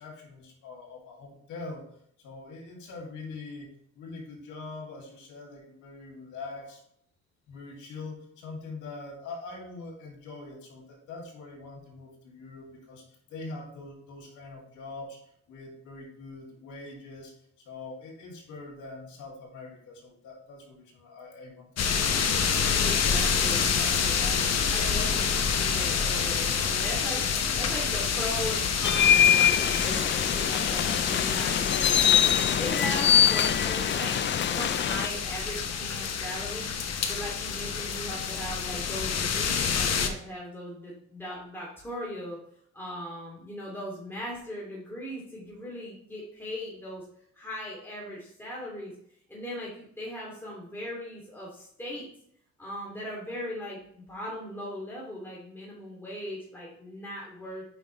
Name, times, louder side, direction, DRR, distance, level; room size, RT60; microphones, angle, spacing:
voice 1, 0.0-1.9 2.2-3.7 3.9-6.8 7.5-13.0 13.3-15.2 15.5-17.3 17.6-22.1, left 3 dB, 90° left, 0 dB, 2.3 m, -43 dB
sound 1, 21.8-40.1, left 6 dB, 60° left, 1.0 m, -28 dB
voice 2, 22.8-27.3 27.6-32.2 32.6-34.2 34.5-36.8 37.1-42.4 42.7-47.0 47.3-48.9 49.3-52.1 52.6-57.6, equal, 5° left, -5 dB, 2.5 m, -38 dB
sound 2, 28.8-35.1, left 9 dB, 40° left, 0.4 m, -24 dB
8.1 x 5.3 x 3.1 m, 0.67 s
cardioid pair, 90°, 30 cm